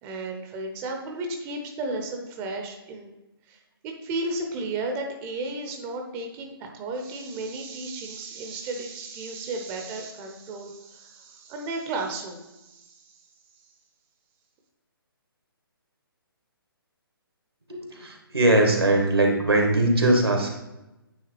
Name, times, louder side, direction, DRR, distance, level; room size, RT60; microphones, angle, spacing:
voice 1, 0.0-3.1 3.5-13.2, right 2 dB, 15° right, 3 dB, 0.6 m, -34 dB
voice 2, 17.7-20.5, right 1 dB, 85° right, 1 dB, 1.6 m, -21 dB
9.2 x 3.4 x 3.2 m, 0.96 s
figure-of-eight pair, 135°, 13 cm